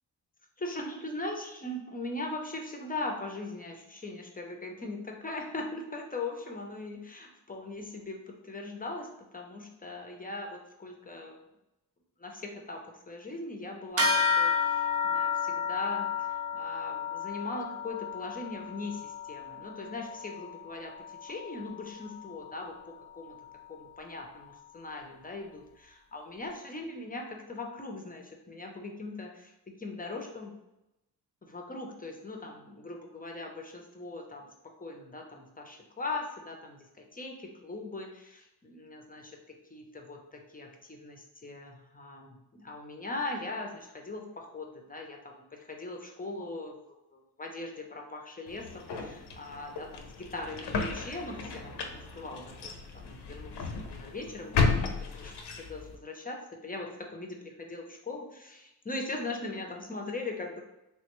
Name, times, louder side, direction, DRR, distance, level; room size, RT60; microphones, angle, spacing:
voice 1, 0.6-11.4 12.2-22.7 23.1-23.4 23.7-30.5 31.4-34.5 34.8-39.4 39.7-46.8 47.1-54.9 55.1-60.6, left 2 dB, 20° left, 2 dB, 0.4 m, -40 dB
sound 1, 14.0-23.8, left 5 dB, 35° right, 0.6 m, -32 dB
sound 2, 48.5-56.0, left 4 dB, 75° left, 0.5 m, -34 dB
3.3 x 2.1 x 2.9 m, 0.91 s
cardioid pair, 80°, 41 cm